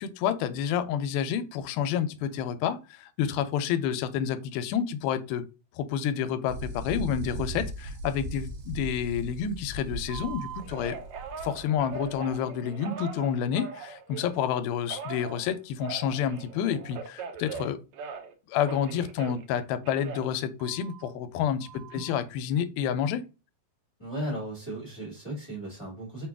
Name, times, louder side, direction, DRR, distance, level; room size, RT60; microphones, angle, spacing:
voice 1, 0.0-5.5 5.7-11.0 11.4-17.8 18.5-23.2, left 8 dB, 90° left, 2.4 m, -29 dB
sound 1, 6.5-12.3, right 2 dB, 70° right, 2.7 m, -38 dB
Telephone, 10.1-14.4 14.9-18.3 18.6-21.1 21.6-22.1, right 6 dB, 90° right, 1.6 m, -41 dB
voice 2, 24.0-26.3, right 1 dB, 45° left, 0.3 m, -36 dB
6.0 x 2.3 x 3.4 m
omnidirectional pair, 4.2 m